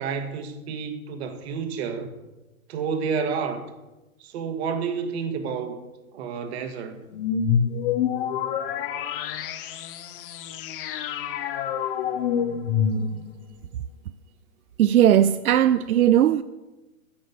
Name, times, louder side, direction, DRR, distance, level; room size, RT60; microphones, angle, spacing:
voice 1, 0.0-2.1 2.7-3.6 4.2-5.8 6.1-7.0, right 6 dB, 50° right, 1.6 m, -30 dB
sound 1, 7.1-13.4, left 7 dB, 40° left, 1.0 m, -27 dB
voice 2, 14.8-16.4, right 11 dB, 85° right, 0.6 m, -18 dB
10.5 x 6.5 x 6.9 m
hypercardioid pair, 130°, 42 cm